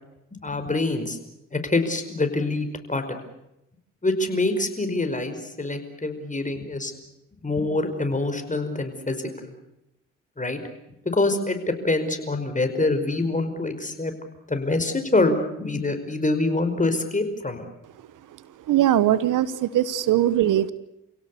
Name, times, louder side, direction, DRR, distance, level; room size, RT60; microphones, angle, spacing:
voice 1, 0.3-1.2 1.5-3.2 4.0-6.9 7.4-9.5 10.4-10.6 11.1-11.6 11.8-14.1 14.5-17.7, left 2 dB, 25° left, 7 dB, 5.2 m, -25 dB
voice 2, 18.7-20.7, right 12 dB, 70° right, 16 dB, 1.1 m, -20 dB
29.0 x 17.0 x 8.5 m, 0.87 s
hypercardioid pair, 45°, 33 cm